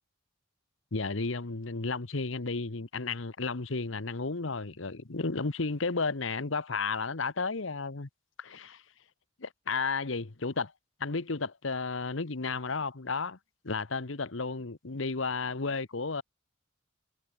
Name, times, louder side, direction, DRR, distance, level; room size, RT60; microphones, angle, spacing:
voice 1, 0.9-8.1 8.4-8.8 9.4-10.7 11.0-13.4 13.6-16.2, left 4 dB, 70° left, 1.2 m, -33 dB
head